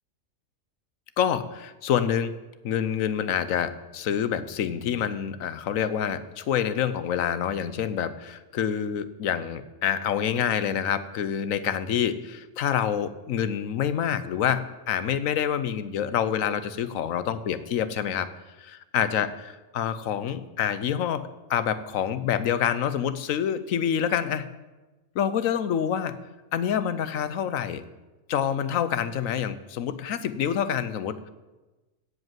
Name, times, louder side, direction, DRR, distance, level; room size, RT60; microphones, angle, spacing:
voice 1, 1.2-2.3 2.6-18.3 18.6-24.5 25.1-26.2 26.5-27.8 28.3-31.3, left 9 dB, 80° left, 13 dB, 1.1 m, -27 dB
16.0 x 5.3 x 7.5 m, 1.1 s
omnidirectional pair, 1.4 m